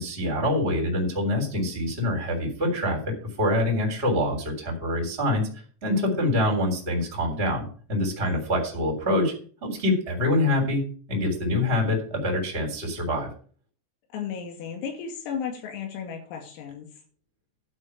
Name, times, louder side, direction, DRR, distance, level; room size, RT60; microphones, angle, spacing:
voice 1, 0.0-3.0 3.4-5.5 5.8-9.3 9.6-10.8 11.1-13.3, left 1 dB, 15° right, 0 dB, 2.9 m, -25 dB
voice 2, 14.1-16.9, left 7 dB, 85° left, 3 dB, 5.2 m, -34 dB
11.5 x 4.9 x 8.1 m, 0.43 s
omnidirectional pair, 5.9 m